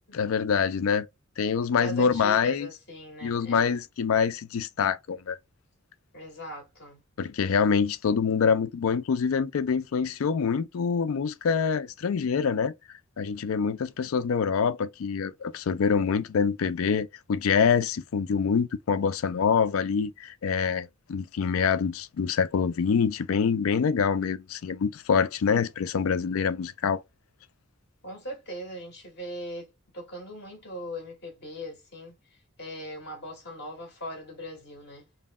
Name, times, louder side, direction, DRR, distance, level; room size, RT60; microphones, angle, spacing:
voice 1, 0.1-1.1 1.4-2.7 3.2-5.4 7.2-12.7 13.2-27.0, left 6 dB, 75° left, 0.4 m, -25 dB
voice 2, 1.8-3.8 6.1-7.0 28.0-35.1, equal, 55° left, 2.2 m, -40 dB
5.4 x 2.1 x 2.2 m
head